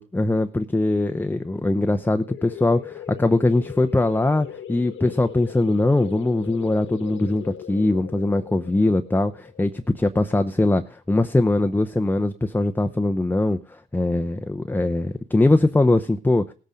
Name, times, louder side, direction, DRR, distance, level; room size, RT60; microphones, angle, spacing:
voice 1, 0.0-16.5, left 2 dB, 10° left, 6 dB, 0.8 m, -21 dB
sound 1, 2.3-11.6, left 9 dB, 75° left, 1.4 m, -40 dB
17.5 x 8.1 x 5.2 m, 0.41 s
cardioid pair, 90°, 20 cm